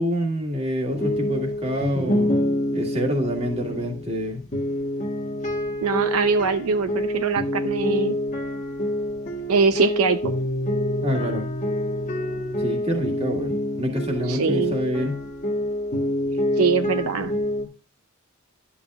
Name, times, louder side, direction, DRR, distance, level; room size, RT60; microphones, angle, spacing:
voice 1, 0.0-2.4 2.7-4.4 11.0-11.5 12.6-15.2, equal, 30° right, 3 dB, 1.8 m, -27 dB
sound 1, 0.9-17.6, left 1 dB, 35° left, 1.3 m, -27 dB
voice 2, 5.8-8.2 9.5-10.3 14.3-14.7 16.6-17.3, right 5 dB, 85° right, 10 dB, 0.6 m, -22 dB
11.5 x 7.2 x 2.4 m, 0.37 s
head